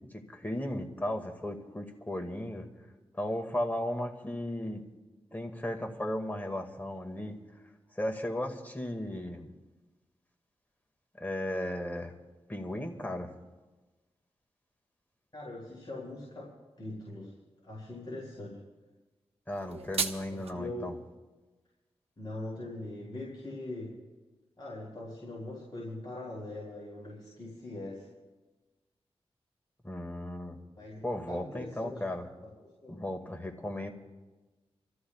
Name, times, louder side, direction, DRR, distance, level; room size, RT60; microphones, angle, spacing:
voice 1, 0.1-2.7 3.1-4.8 5.3-7.4 8.0-9.5 11.2-12.1 12.5-13.3 19.5-21.0 29.8-30.6 31.0-32.3 32.9-33.9, left 1 dB, 15° left, 3 dB, 2.0 m, -35 dB
voice 2, 15.3-17.3 17.6-18.6 20.3-20.9 22.2-24.0 24.6-28.1 30.8-31.9 32.4-32.5 32.8-33.0, left 2 dB, 40° left, -6 dB, 5.4 m, -42 dB
sound 1, 19.5-20.5, right 5 dB, 65° right, 1.0 m, -34 dB
29.0 x 14.5 x 2.4 m, 1.2 s
cardioid pair, 55°, 11 cm